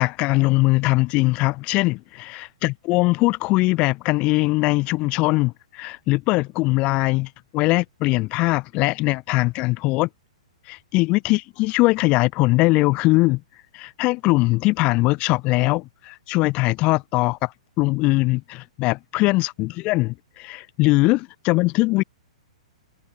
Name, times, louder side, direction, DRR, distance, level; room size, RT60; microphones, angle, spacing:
voice 1, 0.0-10.1 10.7-13.4 13.7-17.5 17.8-22.0, left 22 dB, 35° left, 0.4 m, -21 dB
figure-of-eight pair, 110°, 4 cm